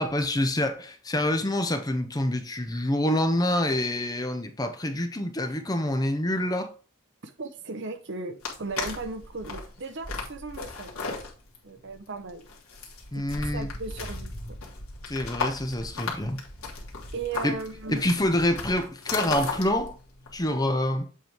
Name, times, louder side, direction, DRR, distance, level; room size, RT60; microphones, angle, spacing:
voice 1, 0.0-6.7 13.1-13.7 15.1-16.4 17.4-17.6 17.9-20.0 20.3-21.1, left 1 dB, 20° left, 0.7 m, -26 dB
voice 2, 7.2-10.9 11.6-12.5 13.1-13.3 13.5-14.6 17.1-18.1, right 3 dB, 55° right, 0.8 m, -36 dB
sound 1, 8.4-20.5, left 4 dB, 80° left, 2.1 m, -36 dB
7.8 x 3.4 x 4.5 m
head